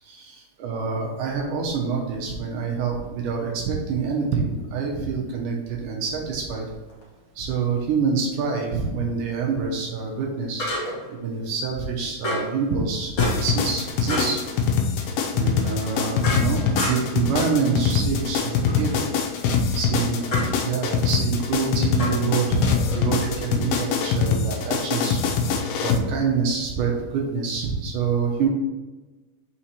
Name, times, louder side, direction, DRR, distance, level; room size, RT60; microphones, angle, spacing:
voice 1, 0.0-6.7 7.4-10.7 11.1-14.4 15.3-19.1 19.8-20.3 20.6-25.2 25.8-28.5, right 5 dB, 75° right, -1 dB, 2.0 m, -26 dB
sound 1, 6.9-7.0 10.6-11.1 12.2-12.6 13.2-13.6 14.1-14.4 15.6-17.2 18.7-19.0 20.3-20.6 22.0-23.0, left 1 dB, 45° left, 2.4 m, -30 dB
sound 2, 13.2-26.0, left 6 dB, 80° left, 2.2 m, -23 dB
5.6 x 4.4 x 4.3 m, 1.2 s
omnidirectional pair, 4.6 m